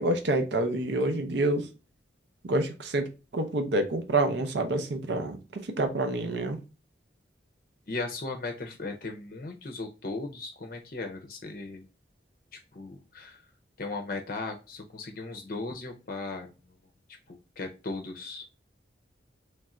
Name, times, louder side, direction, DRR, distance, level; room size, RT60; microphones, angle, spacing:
voice 1, 0.0-1.7 2.4-6.6, right 2 dB, 75° right, 0.6 m, -28 dB
voice 2, 7.9-11.8 12.7-13.4 13.8-16.5 17.3-18.5, left 3 dB, 50° left, 0.5 m, -37 dB
3.2 x 2.4 x 4.1 m
head